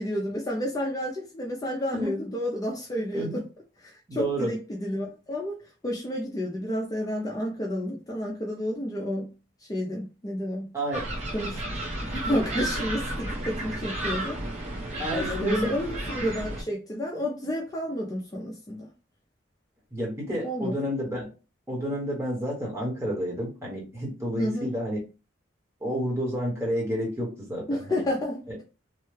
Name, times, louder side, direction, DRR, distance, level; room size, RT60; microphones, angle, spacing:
voice 1, 0.0-3.4 3.8-5.5 5.8-9.3 9.7-10.7 11.3-11.6 12.0-14.4 15.1-18.9 20.4-20.7 24.4-24.7 27.7-28.6, equal, 20° left, 0.5 m, -30 dB
voice 2, 4.1-4.5 10.7-11.1 15.0-15.7 19.9-21.3 21.7-25.0 25.8-28.0 28.5-28.6, equal, 15° right, 1.2 m, -30 dB
sound 1, 10.9-16.6, right 1 dB, 40° right, 1.2 m, -32 dB
3.1 x 2.2 x 3.2 m
head